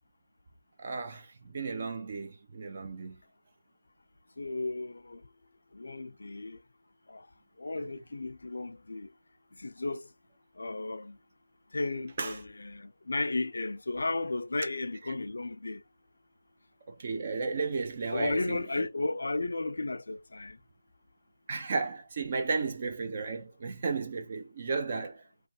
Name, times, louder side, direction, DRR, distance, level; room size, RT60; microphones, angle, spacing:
voice 1, 0.8-3.2 7.7-7.8 12.2-12.4 16.9-18.9 21.5-25.2, right 4 dB, 30° right, 0.6 m, -34 dB
voice 2, 4.4-5.3 5.7-6.6 7.1-7.3 7.6-9.1 9.5-10.1 10.6-11.2 11.7-15.8 18.1-20.6, left 2 dB, 60° left, 0.4 m, -34 dB
3.2 x 2.3 x 2.7 m
figure-of-eight pair, 170°, 0 cm